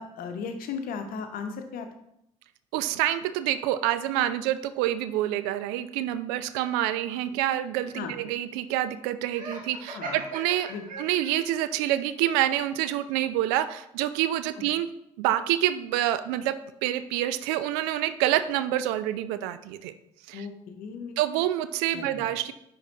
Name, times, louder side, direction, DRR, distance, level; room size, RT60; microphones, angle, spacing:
voice 1, 0.0-1.9 7.9-8.1 9.9-10.2 10.7-10.8 20.3-21.2 21.9-22.3, left 5 dB, 55° left, 6 dB, 0.9 m, -36 dB
voice 2, 2.7-10.7 11.0-14.9 15.2-16.6 16.8-19.9 20.3-20.5 21.2-22.5, right 13 dB, 65° right, 13 dB, 0.4 m, -27 dB
Laughter, 9.3-11.6, right 2 dB, 50° right, 1.6 m, -39 dB
10.0 x 3.6 x 2.9 m, 0.78 s
figure-of-eight pair, 55°, 18 cm